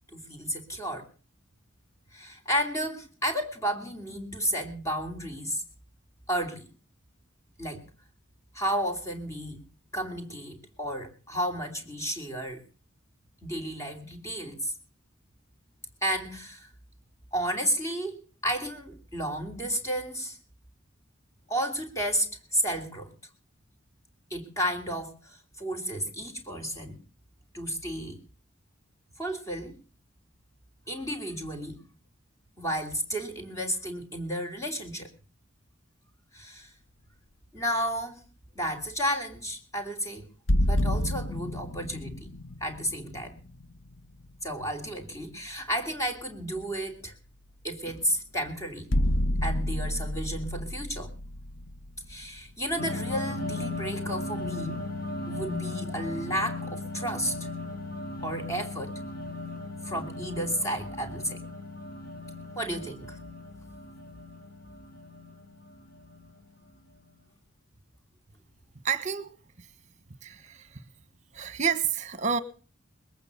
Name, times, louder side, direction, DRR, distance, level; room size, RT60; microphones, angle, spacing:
voice 1, 0.1-1.1 2.1-5.6 6.3-6.7 7.6-7.8 8.5-9.6 9.9-12.6 13.4-14.7 16.0-16.7 17.3-20.4 21.5-23.1 24.3-27.0 27.5-28.2 29.2-29.8 30.9-31.8 32.6-35.1 36.3-36.7 37.5-38.2 38.5-40.3 40.7-42.3 42.6-43.4 44.4-47.1 47.6-48.9 49.4-51.1 52.1-54.9 55.3-57.5 58.2-59.0 59.8-61.4 62.5-63.2, equal, 15° left, 3.1 m, -32 dB
sound 1, 40.5-44.3 47.9-48.0 48.9-52.8, left 1 dB, 70° left, 0.9 m, -29 dB
sound 2, 52.8-66.8, left 2 dB, 50° left, 3.4 m, -37 dB
voice 2, 68.8-69.7 70.2-70.8 71.3-72.4, right 7 dB, 35° right, 1.4 m, -30 dB
21.0 x 8.8 x 6.8 m
head